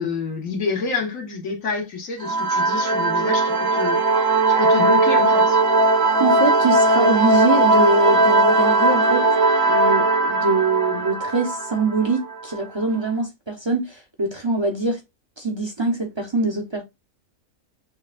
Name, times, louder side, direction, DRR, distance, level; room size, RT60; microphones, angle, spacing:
voice 1, 0.0-5.6, left 4 dB, 80° left, 1.7 m, -28 dB
sound 1, 2.2-12.6, right 2 dB, 65° right, 1.3 m, -18 dB
voice 2, 6.2-9.3 9.7-15.0 15.4-16.8, right 3 dB, 30° right, 0.5 m, -23 dB
6.4 x 2.2 x 2.4 m
omnidirectional pair, 1.4 m